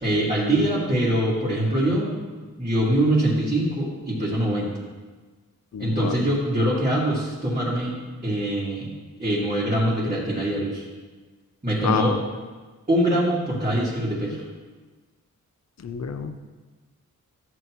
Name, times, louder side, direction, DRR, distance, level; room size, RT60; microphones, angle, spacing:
voice 1, 0.0-4.7 5.8-8.0 8.2-8.9 9.2-10.8 11.6-12.2 12.9-14.4, right 1 dB, 25° right, -8 dB, 2.4 m, -23 dB
voice 2, 5.7-6.1 11.8-12.2 15.8-16.4, left 6 dB, 55° left, 8 dB, 0.8 m, -27 dB
14.0 x 7.9 x 3.1 m, 1.4 s
wide cardioid pair, 110°, 32 cm